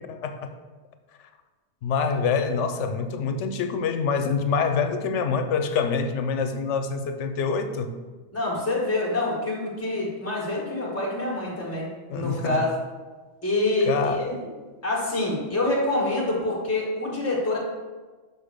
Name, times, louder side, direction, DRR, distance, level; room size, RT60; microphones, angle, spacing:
voice 1, 0.1-0.5 1.8-7.9 12.1-12.6 13.9-14.3, left 5 dB, 85° left, 0.9 m, -26 dB
voice 2, 8.3-12.7 13.4-14.4 14.8-17.6, left 2 dB, 15° left, 1.4 m, -26 dB
6.2 x 5.5 x 3.4 m
omnidirectional pair, 1.2 m